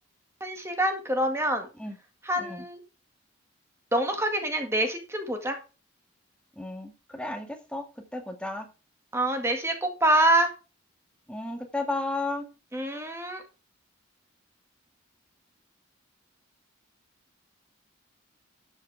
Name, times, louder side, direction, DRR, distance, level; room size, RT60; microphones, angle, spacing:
voice 1, 0.4-1.7 2.2-2.8 3.9-5.6 9.1-10.5 12.7-13.4, right 1 dB, 10° right, 5 dB, 1.9 m, -26 dB
voice 2, 6.6-8.7 11.3-12.5, left 2 dB, 5° left, 4 dB, 1.7 m, -33 dB
13.0 x 7.7 x 3.5 m, 0.32 s
head